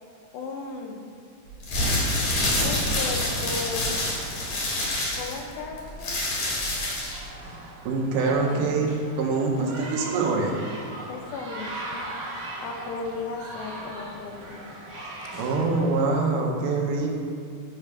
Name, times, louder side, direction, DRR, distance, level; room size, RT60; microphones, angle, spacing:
voice 1, 0.3-1.0 2.6-4.0 5.2-6.2 8.5-8.6 11.1-12.0 12.6-14.6 15.2-15.3, left 4 dB, 80° left, 2 dB, 2.3 m, -35 dB
sound 1, 1.5-7.3, left 1 dB, 65° left, 1.8 m, -26 dB
sound 2, 3.0-16.0, right 1 dB, 55° right, 1.8 m, -40 dB
voice 2, 7.9-8.9 9.2-10.5 15.3-17.1, right 3 dB, 80° right, -1 dB, 1.9 m, -24 dB
6.6 x 3.3 x 4.7 m, 2.3 s
omnidirectional pair, 4.5 m